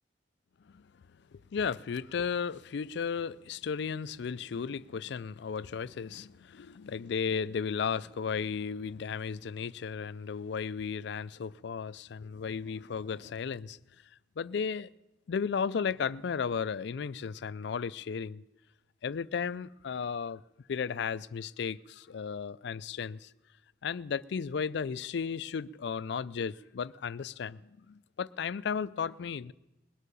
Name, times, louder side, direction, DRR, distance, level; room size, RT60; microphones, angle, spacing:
voice 1, 1.5-13.8 14.4-14.9 15.3-18.4 19.0-20.4 20.7-23.3 23.8-29.5, left 6 dB, 65° left, 0.4 m, -34 dB
20.0 x 8.5 x 6.8 m
head